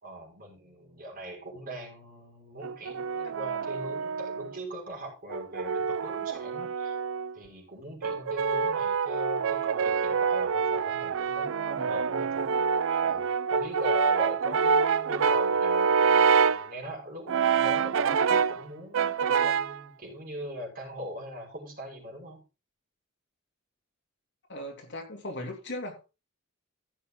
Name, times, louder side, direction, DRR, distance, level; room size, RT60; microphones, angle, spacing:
voice 1, 0.0-7.0 7.3-12.5 13.0-22.4, equal, 45° right, 5.4 m, -41 dB
Brass instrument, 2.6-4.6 5.3-7.4 8.0-16.7 17.3-18.6 18.9-19.8, right 6 dB, 65° right, 0.5 m, -26 dB
voice 2, 24.5-26.1, left 1 dB, 60° left, 2.9 m, -38 dB
15.5 x 6.5 x 3.9 m
head